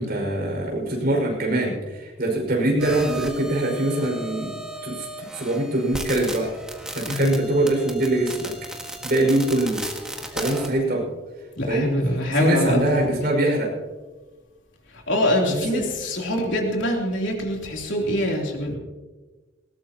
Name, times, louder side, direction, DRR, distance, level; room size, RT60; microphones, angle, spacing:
voice 1, 0.0-4.5 4.8-6.5 6.9-8.5 9.0-9.8 10.3-11.1 11.7-11.9 12.3-13.7 15.5-15.8, right 1 dB, 50° right, -1 dB, 5.6 m, -23 dB
sound 1, 2.8-10.7, right 1 dB, 5° right, 1.7 m, -35 dB
voice 2, 7.1-7.4 11.5-13.1 14.9-18.8, left 1 dB, 70° left, -1 dB, 3.3 m, -24 dB
20.0 x 18.0 x 3.0 m, 1.2 s
head